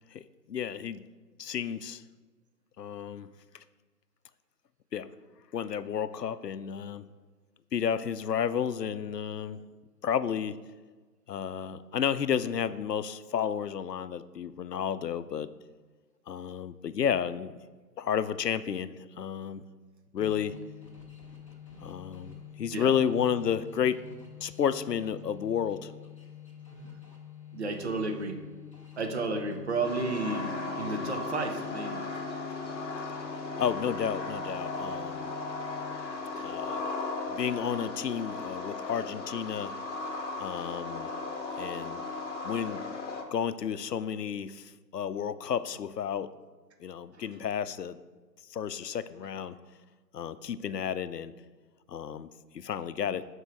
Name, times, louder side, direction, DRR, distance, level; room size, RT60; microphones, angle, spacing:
voice 1, 0.5-1.0 1.4-2.0 2.8-3.3 4.9-5.1 5.5-7.0 7.7-9.6 10.0-10.6 11.3-15.5 16.3-17.5 18.0-19.6 20.1-20.5 21.8-24.0 24.4-25.9 33.6-35.3 36.4-36.8 37.3-39.7 40.4-41.1 41.6-42.0 42.4-42.9 43.3-46.3 46.8-48.0 48.5-49.5 50.1-51.3 51.9-52.3 52.5-53.3, left 8 dB, 70° left, 14 dB, 0.6 m, -31 dB
sound 1, 20.2-36.3, left 9 dB, 20° left, 0.7 m, -48 dB
voice 2, 27.5-28.4 29.0-32.0 36.4-36.5, right 3 dB, 40° right, 4 dB, 0.9 m, -32 dB
sound 2, 29.8-43.2, left 3 dB, 45° left, 1.0 m, -36 dB
12.0 x 4.6 x 3.3 m, 1.3 s
figure-of-eight pair, 140°, 50 cm